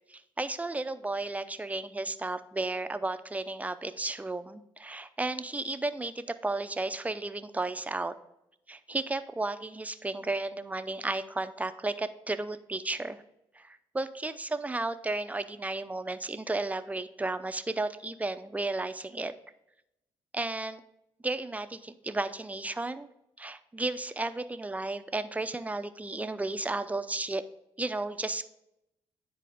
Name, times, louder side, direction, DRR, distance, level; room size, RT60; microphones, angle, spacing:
voice 1, 0.1-8.1 8.7-13.2 13.5-19.3 20.3-20.8 21.2-23.1 23.4-27.4 27.8-28.5, right 2 dB, 15° right, 11 dB, 0.5 m, -33 dB
9.9 x 4.1 x 3.5 m, 0.85 s
cardioid pair, 70°, 11 cm